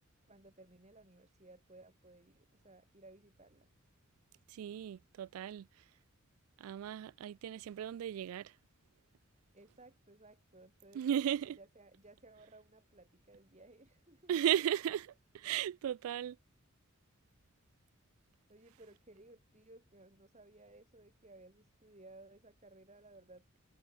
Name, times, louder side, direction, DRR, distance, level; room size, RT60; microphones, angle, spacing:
voice 1, 0.3-3.7 9.5-14.4 18.2-23.5, right 2 dB, 35° right, 4.7 m, -59 dB
voice 2, 4.5-5.7 6.6-8.5 10.9-11.6 14.3-16.4, right 10 dB, 85° right, 0.3 m, -35 dB
head